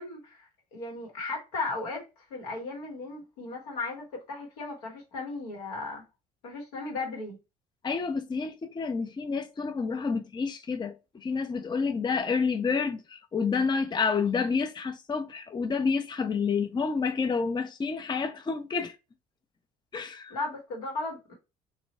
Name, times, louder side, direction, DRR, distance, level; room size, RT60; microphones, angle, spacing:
voice 1, 0.0-6.0 6.4-7.4 20.3-21.3, left 3 dB, 85° left, 1.5 m, -36 dB
voice 2, 7.8-19.0 19.9-20.4, left 5 dB, 25° left, 0.6 m, -29 dB
3.0 x 2.7 x 4.1 m
hypercardioid pair, 65°, 19 cm